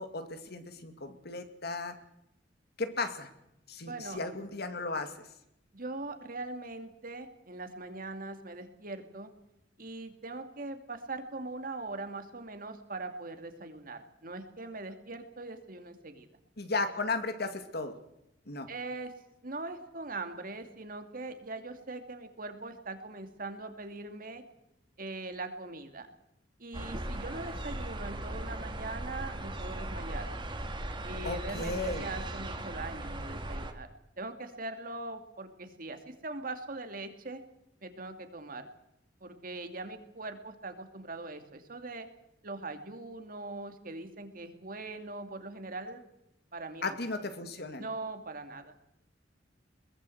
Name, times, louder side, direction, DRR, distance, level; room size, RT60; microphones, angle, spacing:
voice 1, 0.0-2.0 2.8-3.3 3.7-5.3 16.6-18.0 18.5-18.7 31.2-32.1 46.8-47.9, left 3 dB, 60° left, 8 dB, 2.3 m, -35 dB
voice 2, 3.8-4.2 5.7-9.3 9.8-16.3 18.7-19.1 19.4-24.4 25.0-26.1 26.6-30.3 31.0-33.9 34.2-37.4 37.8-38.7 39.2-42.1 42.4-46.0 46.5-47.0 47.8-48.7, right 2 dB, 50° right, 7 dB, 2.6 m, -41 dB
sound 1, 26.7-33.7, right 1 dB, 25° right, 2.2 m, -38 dB
21.5 x 19.0 x 8.0 m, 0.83 s
head